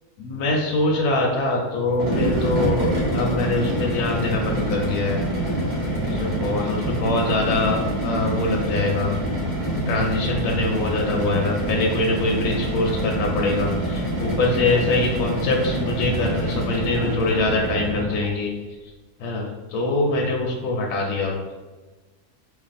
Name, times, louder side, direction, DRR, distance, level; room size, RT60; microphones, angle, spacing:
voice 1, 0.2-5.2 6.0-9.1 9.9-18.5 19.2-21.5, left 2 dB, 75° left, 0 dB, 1.1 m, -24 dB
sound 1, 1.9-18.3, right 1 dB, 40° right, 0.7 m, -26 dB
2.7 x 2.6 x 3.9 m, 1.2 s
omnidirectional pair, 1.6 m